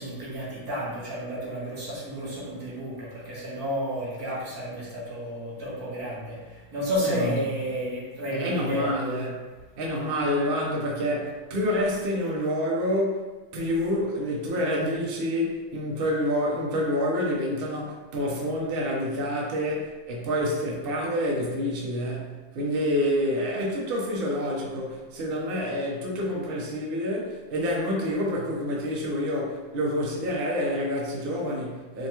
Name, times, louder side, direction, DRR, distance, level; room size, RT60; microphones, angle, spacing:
voice 1, 0.0-8.9, equal, 55° right, -7 dB, 1.6 m, -31 dB
voice 2, 7.0-7.4 8.3-9.3 9.8-32.1, equal, 80° right, -3 dB, 0.5 m, -28 dB
5.0 x 2.3 x 2.9 m, 1.3 s
omnidirectional pair, 2.1 m